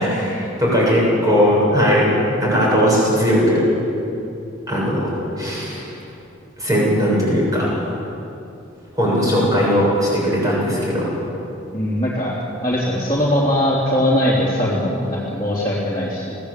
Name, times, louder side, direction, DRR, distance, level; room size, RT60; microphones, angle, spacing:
voice 1, 0.0-2.1 2.4-3.7 4.7-5.1 5.4-5.9 6.6-7.7 8.9-11.1, equal, 15° right, -5 dB, 7.4 m, -18 dB
voice 2, 11.7-12.4 12.6-16.4, left 1 dB, 20° left, -7 dB, 3.5 m, -20 dB
23.5 x 16.5 x 8.5 m, 2.8 s
head